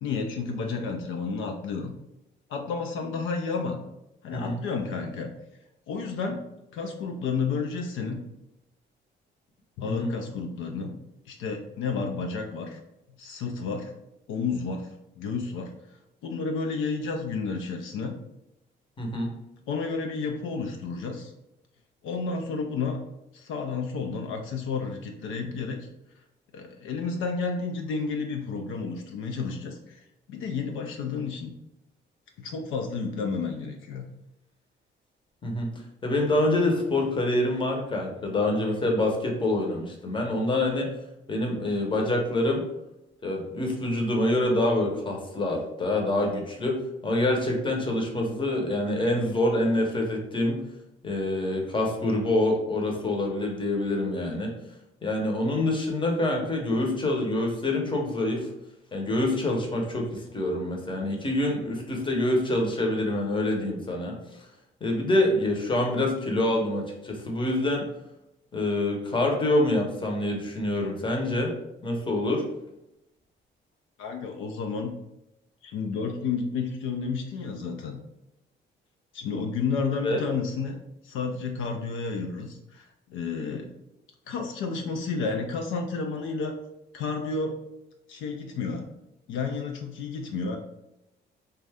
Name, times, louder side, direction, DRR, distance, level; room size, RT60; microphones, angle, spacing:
voice 1, 0.0-1.9 2.5-3.8 4.2-5.3 5.9-6.4 6.7-8.2 9.8-11.0 11.3-12.8 13.2-13.9 14.3-14.9 15.2-15.7 16.2-18.1 19.7-21.3 22.0-23.0 23.3-25.9 26.5-30.0 30.3-31.5 32.4-34.1 74.0-75.0 75.6-78.0 79.1-80.8 81.0-82.8 83.1-83.8 84.3-86.5 86.9-87.6 88.1-88.8 89.3-90.6, left 4 dB, 80° left, 3 dB, 0.4 m, -31 dB
voice 2, 19.0-19.3 35.4-35.7 36.0-40.9 41.3-42.6 43.2-46.8 47.0-50.6 51.0-54.5 55.0-58.5 58.9-64.2 64.8-67.9 68.5-71.6 71.8-72.4 80.0-80.2, left 1 dB, 25° left, 1 dB, 0.7 m, -26 dB
2.5 x 2.2 x 3.3 m, 0.87 s
cardioid pair, 90°, 20 cm